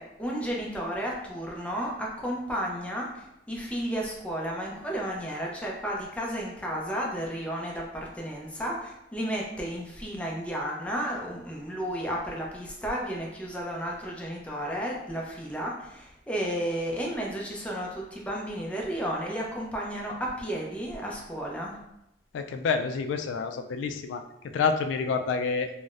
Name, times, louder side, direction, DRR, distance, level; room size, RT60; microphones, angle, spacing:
voice 1, 0.0-21.8, equal, 5° left, -2 dB, 0.5 m, -33 dB
voice 2, 22.3-25.7, left 5 dB, 85° left, 8 dB, 0.3 m, -28 dB
3.9 x 2.1 x 2.4 m, 0.86 s
head